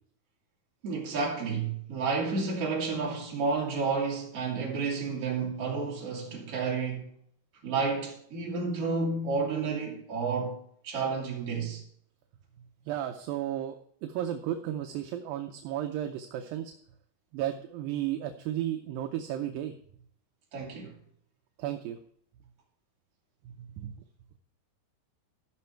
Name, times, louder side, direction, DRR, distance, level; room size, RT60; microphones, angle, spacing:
voice 1, 0.8-7.1 7.6-11.8 20.5-20.9, right 4 dB, 40° right, 3.2 m, -31 dB
voice 2, 12.9-16.7 17.3-19.7 21.6-22.0 23.4-24.0, right 11 dB, 80° right, 2.2 m, -34 dB
15.0 x 6.0 x 4.5 m
omnidirectional pair, 4.6 m